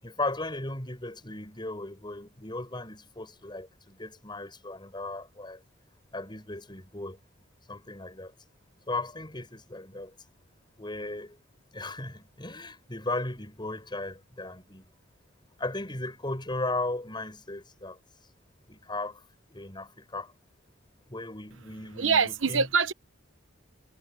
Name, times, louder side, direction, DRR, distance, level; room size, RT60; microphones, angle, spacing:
voice 1, 0.0-5.6 6.1-7.2 7.7-8.3 8.9-10.1 10.8-11.4 11.7-14.9 15.6-18.0 18.7-19.2 19.5-20.3 21.1-22.7, left 2 dB, 25° left, 7.7 m, -36 dB
voice 2, 22.0-22.9, right 5 dB, 70° right, 1.0 m, -24 dB
head